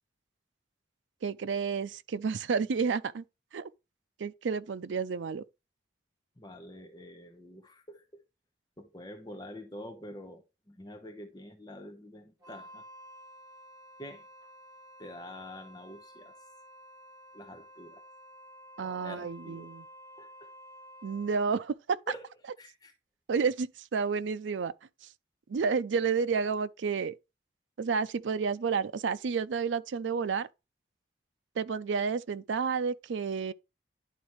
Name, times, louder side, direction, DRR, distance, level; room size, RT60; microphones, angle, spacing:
voice 1, 1.2-3.2 3.5-3.7 4.2-5.4 18.8-19.9 21.0-22.0 23.3-24.7 25.0-25.1 25.5-27.1 27.8-30.5 31.6-33.5, right 5 dB, 85° right, 0.4 m, -30 dB
voice 2, 6.4-8.2 8.8-12.8 14.0-14.2 15.0-16.3 17.3-18.0 18.8-19.7 20.2-20.5 22.1-22.3 22.6-22.9, left 1 dB, 20° left, 0.9 m, -46 dB
Wind instrument woodwind instrument, 12.4-21.7, equal, 20° right, 2.9 m, -52 dB
11.0 x 4.0 x 3.1 m
head